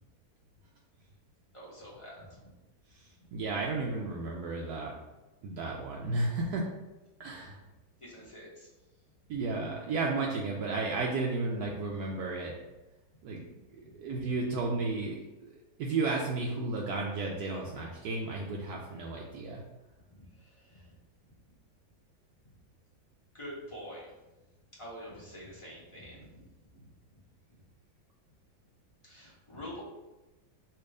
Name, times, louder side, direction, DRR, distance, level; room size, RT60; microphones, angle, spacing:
voice 1, 1.5-2.5 6.0-6.1 8.0-8.7 13.8-13.9 20.1-20.9 23.3-24.1 24.8-26.4 29.0-29.8, equal, 20° left, -6 dB, 0.8 m, -46 dB
voice 2, 3.3-4.9 5.4-6.7 7.2-7.6 9.3-12.5 13.2-13.5 13.7-19.6, right 3 dB, 80° right, -1 dB, 0.8 m, -33 dB
3.4 x 2.9 x 4.7 m, 1.1 s
omnidirectional pair, 2.1 m